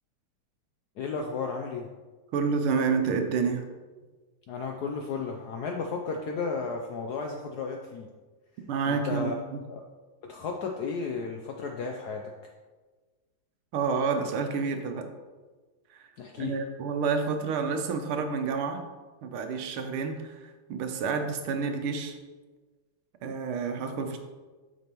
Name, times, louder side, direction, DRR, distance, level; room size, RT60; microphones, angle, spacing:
voice 1, 1.0-1.9 4.5-8.1 8.8-9.3 9.7-9.8 10.2-12.3 16.2-16.6, left 4 dB, 75° left, 2 dB, 0.9 m, -33 dB
voice 2, 2.3-3.6 8.7-9.6 13.7-15.1 15.9-16.0 16.4-18.8 19.2-22.2 23.2-24.2, right 5 dB, 85° right, 6 dB, 1.7 m, -29 dB
8.4 x 6.3 x 3.0 m, 1.3 s
omnidirectional pair, 2.3 m